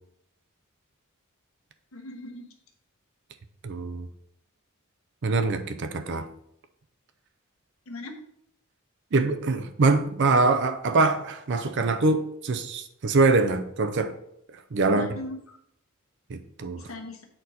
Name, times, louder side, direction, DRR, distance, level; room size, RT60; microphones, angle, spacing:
voice 1, 1.9-2.5 7.9-8.2 14.9-15.6 16.8-17.3, left 1 dB, 70° left, 3 dB, 1.1 m, -38 dB
voice 2, 3.6-4.1 5.2-6.3 9.1-14.1 14.7-15.1 16.3-16.8, right 3 dB, 55° right, 9 dB, 0.5 m, -24 dB
7.8 x 4.4 x 4.1 m, 0.73 s
head